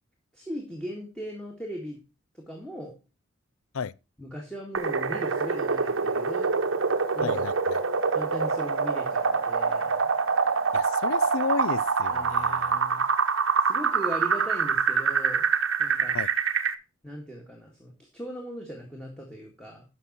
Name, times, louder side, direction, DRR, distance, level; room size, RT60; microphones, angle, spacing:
voice 1, 0.3-2.0 2.5-2.9 4.2-6.5 7.1-7.5 8.1-10.1 12.1-13.1 13.6-15.5 15.8-16.2 17.0-19.8, equal, 5° left, 1.9 m, -38 dB
sound 1, 4.7-16.7, right 5 dB, 70° right, 1.0 m, -25 dB
voice 2, 7.2-7.8 10.7-12.8 16.1-16.3, left 5 dB, 80° left, 0.5 m, -33 dB
11.0 x 6.4 x 4.2 m
head